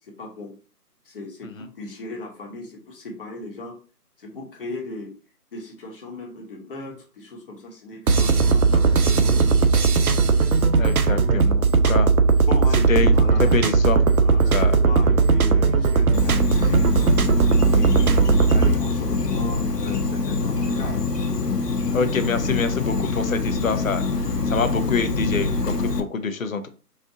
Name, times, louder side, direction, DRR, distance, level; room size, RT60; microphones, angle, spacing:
voice 1, 0.1-0.5 1.1-3.8 4.2-5.1 5.5-8.9 9.2-9.9 12.5-13.6 14.2-16.9 17.6-21.0, left 2 dB, 35° left, 0 dB, 1.2 m, -36 dB
sound 1, 8.1-18.7, right 4 dB, 65° right, 0.6 m, -18 dB
voice 2, 10.8-12.1 12.9-14.0 14.5-14.8 21.9-26.7, left 5 dB, 55° left, 9 dB, 0.7 m, -26 dB
sound 2, 12.2-16.5, right 1 dB, 20° left, 0.9 m, -35 dB
Insect, 16.1-26.0, left 3 dB, 75° left, 1.0 m, -25 dB
4.2 x 2.5 x 3.7 m, 0.35 s
figure-of-eight pair, 150°, 48 cm